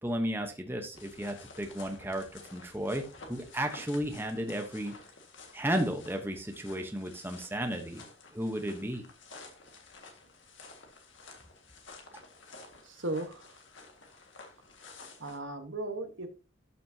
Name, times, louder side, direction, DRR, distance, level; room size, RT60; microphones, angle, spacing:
voice 1, 0.0-5.0 5.5-8.0 8.3-9.0, equal, 10° right, 5 dB, 0.8 m, -34 dB
sound 1, 0.9-15.4, left 3 dB, 65° left, 1.8 m, -52 dB
voice 2, 12.8-13.6 15.2-16.3, right 2 dB, 65° right, 8 dB, 1.2 m, -36 dB
12.0 x 6.0 x 2.7 m, 0.32 s
head